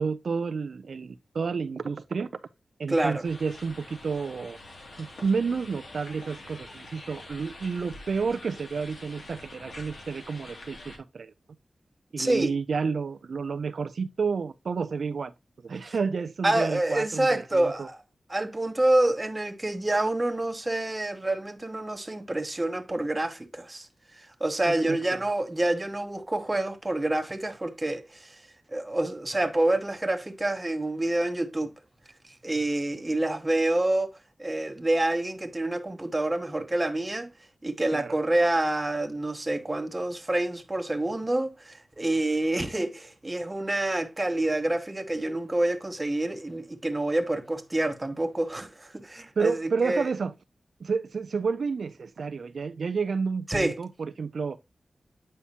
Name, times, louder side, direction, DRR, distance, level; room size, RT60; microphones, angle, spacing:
voice 1, 0.0-2.3 2.8-4.6 5.0-11.3 12.1-15.3 15.6-17.9 24.7-25.2 37.9-38.2 49.4-50.3 50.8-54.6, right 5 dB, 75° right, 0.4 m, -30 dB
voice 2, 2.9-3.2 12.2-12.5 15.8-15.9 16.4-18.0 18.3-23.9 24.4-28.3 28.7-31.7 32.4-34.1 34.4-37.3 37.6-50.1 53.5-53.8, right 1 dB, 20° right, 0.9 m, -27 dB
sound 1, 3.2-11.0, left 2 dB, 65° left, 2.3 m, -46 dB
8.5 x 5.6 x 2.8 m
wide cardioid pair, 95°, 0 cm